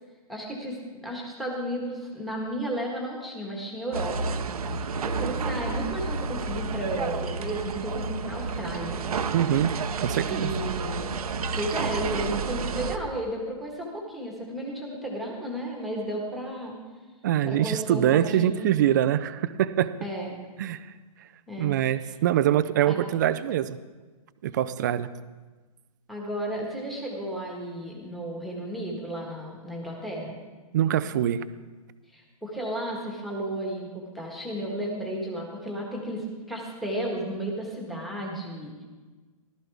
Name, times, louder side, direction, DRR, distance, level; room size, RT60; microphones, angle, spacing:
voice 1, 0.3-9.0 10.3-11.2 11.6-16.8 17.4-18.7 20.0-20.3 21.5-21.7 22.9-23.0 26.1-30.4 32.1-38.8, right 1 dB, ahead, -1 dB, 1.5 m, -33 dB
sound 1, 3.9-13.0, right 4 dB, 80° right, 0.9 m, -30 dB
voice 2, 9.3-9.7 10.0-10.5 17.2-19.9 20.6-20.8 21.6-23.8 24.4-25.1 30.7-31.4, right 11 dB, 30° right, 14 dB, 0.4 m, -24 dB
15.0 x 13.0 x 3.5 m, 1.3 s
hypercardioid pair, 160°, 19 cm